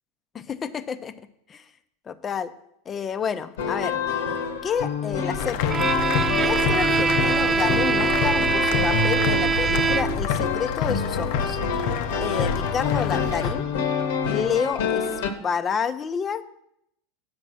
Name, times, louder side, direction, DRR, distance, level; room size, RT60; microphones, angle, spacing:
voice 1, 0.3-1.1 1.5-1.7 2.1-2.5 2.9-4.0 4.6-5.9 6.4-11.6 12.2-13.7 14.3-15.1 15.4-16.4, left 7 dB, 25° left, 12 dB, 0.6 m, -29 dB
sound 1, 3.6-15.3, left 6 dB, 85° left, 1.1 m, -28 dB
sound 2, 5.4-13.5, left 6 dB, 65° left, 0.7 m, -28 dB
Bowed string instrument, 5.7-10.4, right 5 dB, 25° right, 0.4 m, -23 dB
7.9 x 5.2 x 7.5 m, 0.76 s
supercardioid pair, 125°, 0 cm